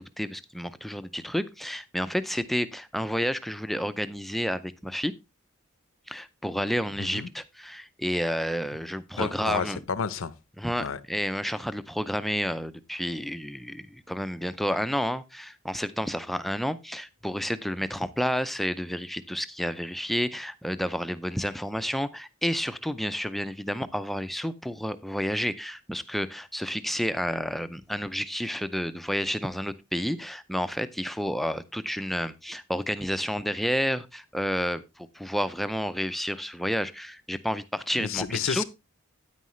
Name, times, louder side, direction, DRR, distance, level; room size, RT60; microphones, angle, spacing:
voice 1, 0.0-5.1 6.1-9.8 10.6-38.6, equal, ahead, 0.5 m, -30 dB
voice 2, 9.2-10.3 10.8-11.0 38.0-38.6, left 6 dB, 75° left, 0.7 m, -30 dB
9.4 x 9.3 x 3.1 m
head